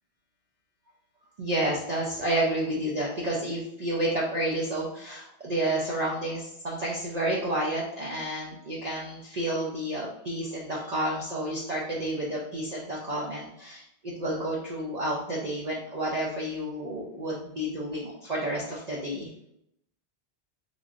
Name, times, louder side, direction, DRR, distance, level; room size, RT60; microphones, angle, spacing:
voice 1, 1.4-19.3, right 1 dB, 50° right, -5 dB, 0.5 m, -30 dB
3.2 x 2.6 x 2.4 m, 0.77 s
omnidirectional pair, 1.1 m